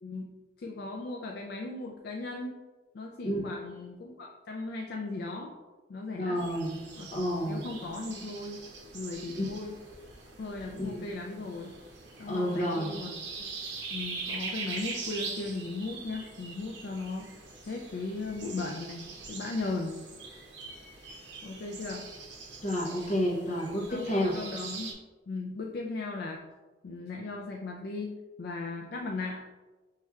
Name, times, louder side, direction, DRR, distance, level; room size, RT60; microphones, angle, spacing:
voice 1, 0.6-2.6 2.9-5.5 5.9-6.4 7.0-7.1 7.5-8.6 8.9-9.7 10.4-11.7 12.2-13.1 13.9-17.4 17.7-20.0 21.4-22.1 23.9-24.0 24.3-24.9 25.3-26.4 26.8-29.5, left 3 dB, 55° left, 0 dB, 0.4 m, -37 dB
voice 2, 6.2-6.7 7.1-7.6 9.4-9.5 10.8-11.0 12.3-12.9 22.6-24.3, equal, 40° left, -1 dB, 0.8 m, -30 dB
sound 1, 6.4-24.9, right 4 dB, 75° right, 0.8 m, -43 dB
5.5 x 3.2 x 2.3 m, 1.2 s
head